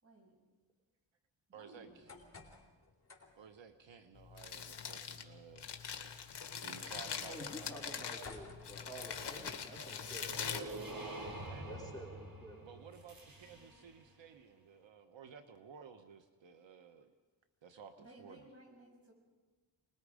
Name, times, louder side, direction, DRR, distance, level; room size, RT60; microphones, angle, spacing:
voice 1, 0.0-0.3 1.5-2.2 18.0-19.1, right 1 dB, 30° right, 0 dB, 6.9 m, -58 dB
voice 2, 1.5-2.1 3.4-5.7 6.6-8.1 10.9-11.8 12.6-17.2 17.6-18.5, right 6 dB, 75° right, 7 dB, 1.2 m, -55 dB
sound 1, 1.8-9.5, left 3 dB, 35° left, 3.5 m, -59 dB
Crumpling crinkling, 4.2-11.5, left 7 dB, 60° left, 1.8 m, -43 dB
voice 3, 7.3-10.7 11.7-12.6, equal, 10° left, -2 dB, 3.5 m, -49 dB
sound 2, 10.0-14.0, right 2 dB, 50° right, 4.2 m, -47 dB
25.0 x 20.5 x 5.0 m, 1.3 s
wide cardioid pair, 110°, 46 cm